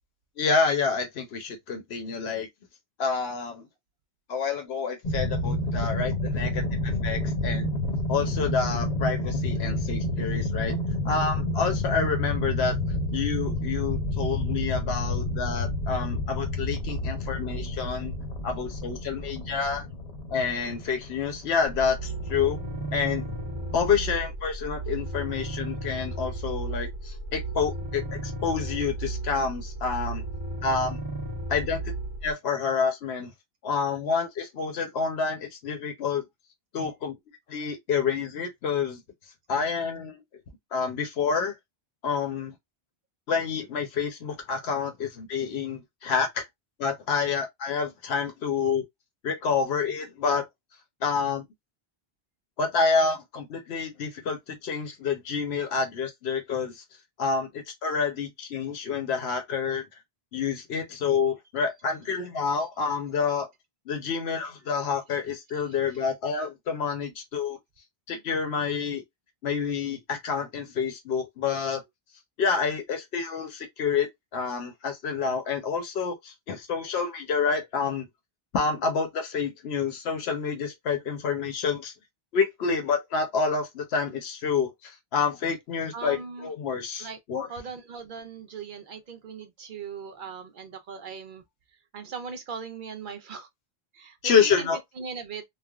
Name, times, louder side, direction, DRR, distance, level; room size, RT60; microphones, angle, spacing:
voice 1, 0.4-2.5 3.0-3.7 4.3-7.7 8.1-10.8 11.0-12.7 13.1-18.1 18.4-19.8 20.3-22.6 22.9-23.3 23.7-30.2 30.6-31.0 31.5-31.8 32.2-33.3 33.6-36.2 36.7-37.2 37.5-39.0 39.5-40.2 40.7-41.5 42.0-42.5 43.3-46.4 46.8-48.8 49.2-50.5 51.0-51.5 52.6-56.8 57.2-59.8 60.3-63.5 63.9-67.6 68.1-69.0 69.4-71.8 72.4-78.1 78.5-81.9 82.3-87.5 94.2-94.8, left 5 dB, 90° left, 1.0 m, -28 dB
sound 1, 5.0-24.2, left 1 dB, 45° left, 0.8 m, -30 dB
sound 2, 21.7-32.3, right 2 dB, 30° right, 0.8 m, -34 dB
voice 2, 65.5-66.0 85.9-86.5 87.0-87.2 87.5-91.4 91.9-93.5 93.9-94.7 95.0-95.4, right 5 dB, 60° right, 0.7 m, -39 dB
3.3 x 2.1 x 2.2 m
omnidirectional pair, 1.0 m